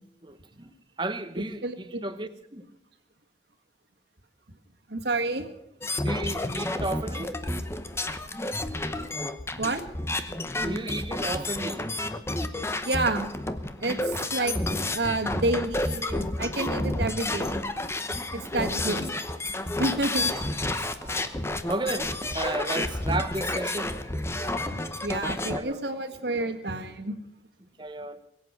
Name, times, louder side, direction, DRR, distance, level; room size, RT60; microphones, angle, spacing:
voice 1, 0.2-0.7 1.0-2.6 6.0-7.3 9.5-9.6 10.6-11.9 14.4-14.5 18.4-19.0 20.6-21.4 21.7-23.9 25.5-25.8 26.4-26.5 27.8-28.2, right 2 dB, 25° right, 1.0 m, -34 dB
voice 2, 1.6-2.0 4.9-5.5 5.8-5.9 9.6-9.8 12.8-13.3 13.8-14.6 14.9-17.6 18.3-19.1 19.8-20.3 25.0-27.2, right 2 dB, 70° right, 1.7 m, -29 dB
sound 1, 5.8-25.6, left 2 dB, 15° left, 0.8 m, -30 dB
22.0 x 8.4 x 7.9 m
head